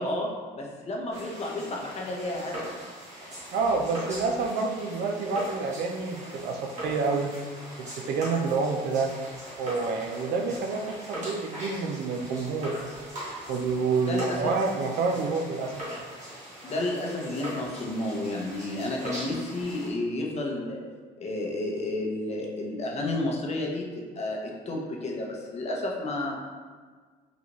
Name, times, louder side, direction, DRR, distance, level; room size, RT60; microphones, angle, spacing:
voice 1, 0.0-2.7 14.0-14.5 16.6-20.8 21.2-24.4 24.7-26.4, left 2 dB, 40° left, -1 dB, 0.7 m, -31 dB
sound 1, 1.1-19.9, equal, 45° right, 1.5 m, -40 dB
voice 2, 3.5-7.4 7.8-9.1 9.6-12.8 13.5-15.8, right 4 dB, 70° right, 3 dB, 0.5 m, -28 dB
3.8 x 2.4 x 3.0 m, 1.5 s
cardioid pair, 110°, 17 cm